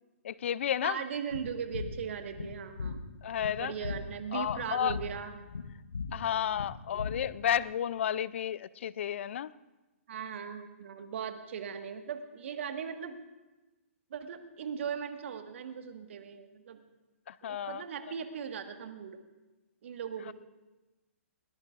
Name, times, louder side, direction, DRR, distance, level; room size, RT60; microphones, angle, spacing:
voice 1, 0.2-1.0 3.2-3.7 4.3-5.0 6.1-9.5 17.3-17.8 20.3-20.4, left 9 dB, 60° left, 19 dB, 0.4 m, -32 dB
voice 2, 0.8-3.0 3.6-5.3 10.1-13.2 14.1-16.8 17.4-19.2 19.8-20.3, right 7 dB, 60° right, 6 dB, 1.6 m, -38 dB
sound 1, 1.3-7.6, left 4 dB, 85° left, 1.1 m, -40 dB
21.0 x 18.5 x 2.5 m, 1.1 s
hypercardioid pair, 125°, 8 cm